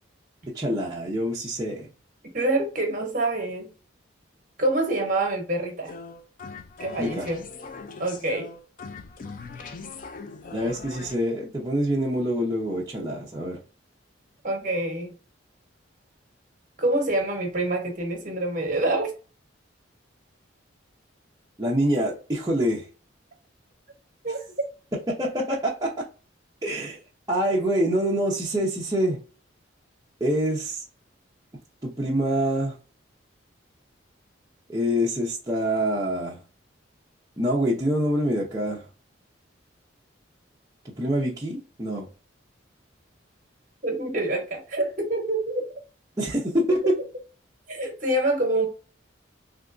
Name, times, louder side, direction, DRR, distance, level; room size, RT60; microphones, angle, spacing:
voice 1, 0.5-1.9 7.0-7.3 10.5-13.6 21.6-22.9 25.1-26.1 26.6-27.0 27.3-29.2 30.2-30.8 31.8-32.7 34.7-36.4 37.4-38.8 41.0-42.1 46.2-47.0, equal, 20° right, 0.6 m, -25 dB
voice 2, 2.3-3.7 4.6-5.9 6.8-7.4 8.0-8.5 14.4-15.1 16.8-19.1 24.2-24.4 43.8-45.6 47.7-48.7, right 2 dB, 40° right, 1.1 m, -26 dB
sound 1, 5.9-11.2, left 4 dB, 45° left, 0.4 m, -40 dB
3.4 x 2.8 x 2.5 m
head